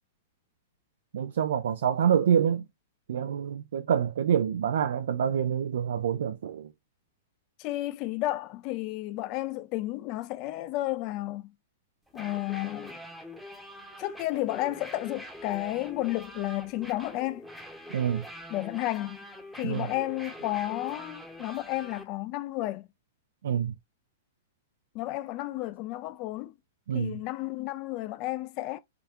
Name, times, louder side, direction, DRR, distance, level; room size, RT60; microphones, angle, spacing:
voice 1, 1.1-2.6 3.1-6.7 17.9-18.2 19.6-19.9 23.4-23.7 26.9-27.2, right 8 dB, 75° right, 0.3 m, -26 dB
voice 2, 7.6-11.5 12.1-13.0 14.0-17.5 18.5-19.2 19.5-22.9 24.9-26.5 26.9-28.8, left 17 dB, 40° left, 0.3 m, -32 dB
sound 1, 12.1-22.0, equal, ahead, 0.8 m, -44 dB
3.4 x 2.3 x 2.8 m
hypercardioid pair, 125°, 0 cm